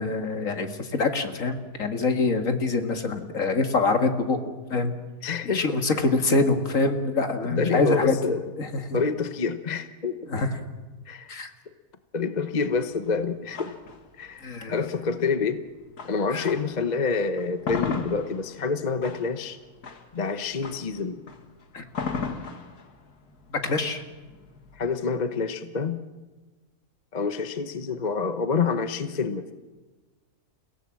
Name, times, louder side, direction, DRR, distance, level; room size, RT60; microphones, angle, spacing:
voice 1, 0.0-4.9 5.5-8.2 8.6-9.0 10.3-10.5 11.3-11.5 14.4-14.7 16.3-16.5 21.7-21.8 23.5-24.0, left 3 dB, 60° left, 6 dB, 2.2 m, -25 dB
voice 2, 5.2-5.8 7.5-8.4 8.9-10.3 11.1-11.4 12.1-13.7 14.2-15.6 16.0-19.6 20.1-21.2 24.7-26.0 27.1-29.5, left 5 dB, 30° left, 9 dB, 1.0 m, -27 dB
sound 1, 12.7-16.9 17.3-25.2, left 5 dB, 85° left, 2.3 m, -36 dB
29.5 x 17.0 x 7.6 m, 1.3 s
omnidirectional pair, 1.6 m